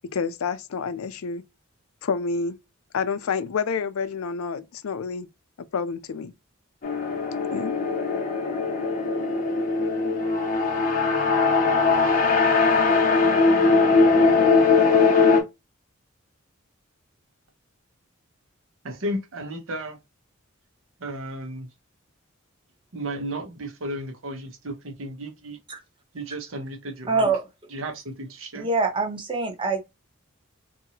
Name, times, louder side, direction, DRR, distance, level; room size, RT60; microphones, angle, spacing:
voice 1, 0.1-1.4 2.0-2.6 2.9-5.3 5.7-6.3 7.5-7.7, left 5 dB, 85° left, 0.4 m, -28 dB
sound 1, 6.8-15.4, left 4 dB, 40° left, 0.7 m, -20 dB
voice 2, 18.8-20.0 21.0-21.7 22.9-25.6 26.1-27.3 27.7-28.7, right 1 dB, 70° right, 0.9 m, -34 dB
voice 3, 27.1-27.4 28.5-29.9, right 4 dB, 25° right, 0.8 m, -24 dB
2.8 x 2.6 x 2.8 m
head